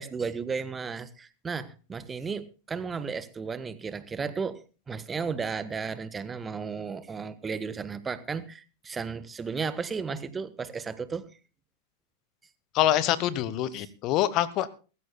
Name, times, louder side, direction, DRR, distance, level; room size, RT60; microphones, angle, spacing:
voice 1, 0.0-4.6 4.9-11.3 13.8-13.9, right 5 dB, 15° right, 15 dB, 1.3 m, -34 dB
voice 2, 12.7-14.7, left 13 dB, 40° left, 18 dB, 1.1 m, -25 dB
23.0 x 14.0 x 2.3 m, 0.34 s
figure-of-eight pair, 90°, 0 cm